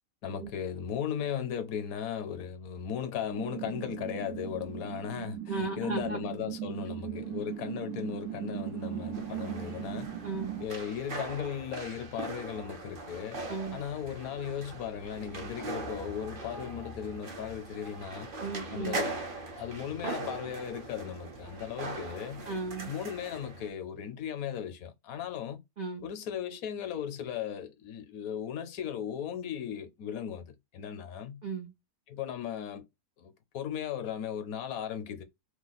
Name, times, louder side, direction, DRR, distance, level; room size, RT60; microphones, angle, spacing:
voice 1, 0.2-10.1 10.6-13.4 13.7-18.3 18.7-19.2 19.6-22.4 22.8-25.6 26.0-31.4 32.1-32.9 33.2-35.2, left 8 dB, 70° left, 1.1 m, -37 dB
sound 1, 3.3-10.7, right 10 dB, 90° right, 1.3 m, -38 dB
voice 2, 5.5-6.2 10.2-10.6 13.5-13.8 18.4-19.0 22.5-22.9 25.8-26.1 31.4-31.7, right 4 dB, 70° right, 0.4 m, -35 dB
sound 2, 9.1-23.7, right 2 dB, 45° right, 0.7 m, -41 dB
3.0 x 2.2 x 3.9 m
omnidirectional pair, 1.6 m